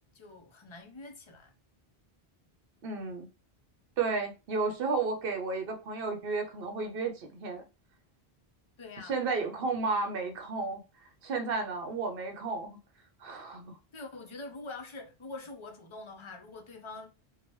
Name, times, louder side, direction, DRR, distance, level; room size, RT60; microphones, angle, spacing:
voice 1, 0.1-1.5 8.8-9.5 13.9-17.1, left 3 dB, 35° left, 0.5 m, -45 dB
voice 2, 2.8-3.3 4.0-7.7 9.0-10.8 11.2-12.8 13.2-13.8, right 4 dB, 65° right, 0.9 m, -32 dB
2.8 x 2.2 x 3.0 m
omnidirectional pair, 1.0 m